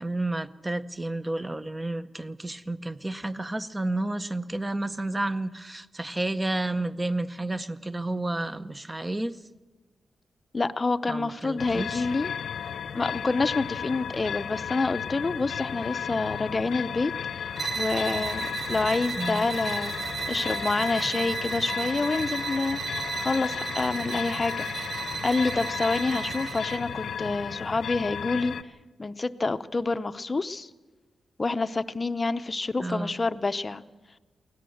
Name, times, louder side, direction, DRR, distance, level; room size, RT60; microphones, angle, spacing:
voice 1, 0.0-9.4 11.1-12.1 19.2-19.4 32.8-33.2, right 2 dB, 15° right, 12 dB, 0.7 m, -31 dB
voice 2, 10.5-12.3 12.9-17.1 17.4-19.9 20.3-22.8 23.2-28.5 29.0-30.7 31.4-33.8, left 3 dB, 30° left, 12 dB, 0.7 m, -28 dB
sound 1, 11.6-28.6, left 8 dB, 80° left, 0.8 m, -34 dB
sound 2, 17.5-26.9, right 6 dB, 50° right, 1.2 m, -34 dB
23.0 x 17.5 x 7.8 m, 1.2 s
wide cardioid pair, 130°, 0 cm